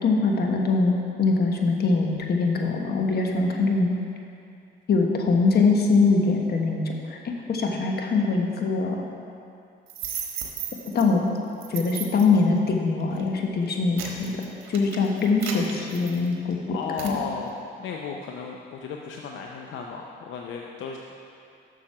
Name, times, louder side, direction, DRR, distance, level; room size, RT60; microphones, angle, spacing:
voice 1, 0.0-3.9 4.9-9.0 10.9-11.2 11.7-14.3 14.7-16.8 17.0-17.2, left 4 dB, 55° left, 1 dB, 1.2 m, -23 dB
sound 1, 9.9-11.0 11.6-12.4 13.0-13.2 13.7-16.5 17.0-17.2, right 7 dB, 85° right, 1.1 m, -35 dB
voice 2, 16.7-21.0, left 5 dB, 75° left, 1 dB, 0.6 m, -34 dB
7.4 x 6.3 x 6.0 m, 2.5 s
cardioid pair, 90°, 20 cm